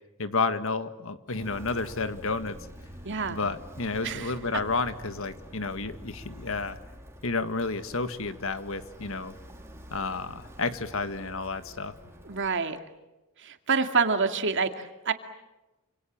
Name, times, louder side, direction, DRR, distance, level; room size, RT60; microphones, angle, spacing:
voice 1, 0.2-2.6 3.3-6.8 7.2-9.3 9.9-11.9, left 3 dB, 65° left, 11 dB, 1.8 m, -31 dB
Walk footsteps, 1.3-12.5, equal, 10° right, 3.5 m, -47 dB
voice 2, 3.0-3.4 4.0-4.3 12.2-12.8 13.4-15.1, right 5 dB, 60° right, 7 dB, 2.3 m, -27 dB
28.0 x 26.5 x 7.5 m, 1.0 s
head